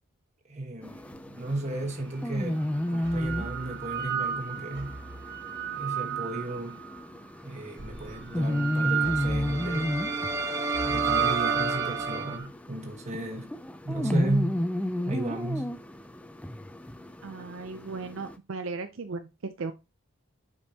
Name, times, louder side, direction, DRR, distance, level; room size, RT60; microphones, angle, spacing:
voice 1, 0.5-5.0 5.7-6.8 7.4-10.0 10.8-13.5 13.8-14.6 15.0-15.8, right 1 dB, 30° right, 1.3 m, -34 dB
sound 1, 0.8-18.4, left 1 dB, 5° left, 0.4 m, -33 dB
sound 2, 1.7-1.8 2.8-7.0 7.8-12.5, right 8 dB, 50° right, 1.0 m, -33 dB
sound 3, 9.0-12.4, right 3 dB, 15° right, 0.8 m, -30 dB
voice 2, 17.2-19.7, right 4 dB, 65° right, 0.5 m, -36 dB
8.0 x 5.2 x 2.8 m
head